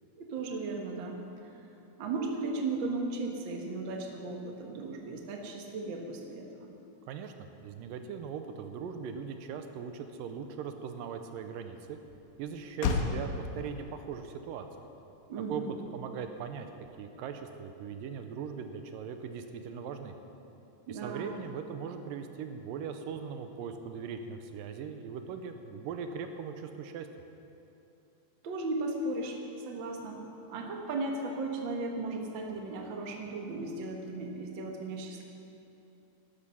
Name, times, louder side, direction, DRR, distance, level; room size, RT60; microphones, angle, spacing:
voice 1, 0.2-1.2 2.0-6.7 15.3-15.8 20.9-21.3 28.4-29.4 29.6-30.2 30.5-35.2, right 3 dB, 55° right, 1 dB, 1.4 m, -36 dB
voice 2, 7.1-12.0 12.4-14.7 15.4-16.7 17.0-20.1 20.9-27.1, right 6 dB, 80° right, 7 dB, 2.3 m, -40 dB
Motor vehicle (road), 9.2-17.4, left 4 dB, 75° left, 2.6 m, -39 dB
13.0 x 12.5 x 5.7 m, 2.8 s
omnidirectional pair, 4.1 m